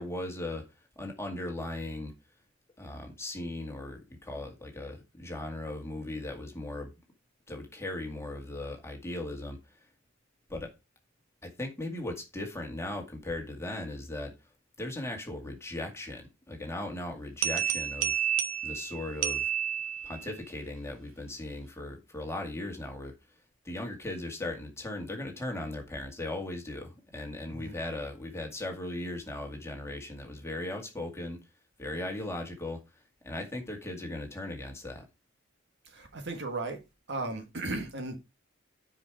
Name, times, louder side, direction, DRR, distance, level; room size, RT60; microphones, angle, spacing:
voice 1, 0.0-2.1 2.8-6.9 7.5-9.8 10.5-10.7 11.4-14.3 14.8-18.2 18.6-19.5 20.0-23.1 23.6-31.4 31.8-35.0, left 1 dB, 15° left, 2.1 m, -38 dB
sound 1, 17.4-20.4, right 9 dB, 75° right, 1.1 m, -30 dB
voice 2, 35.8-36.8 37.1-38.2, right 2 dB, 60° right, 1.8 m, -36 dB
9.4 x 5.1 x 4.8 m
head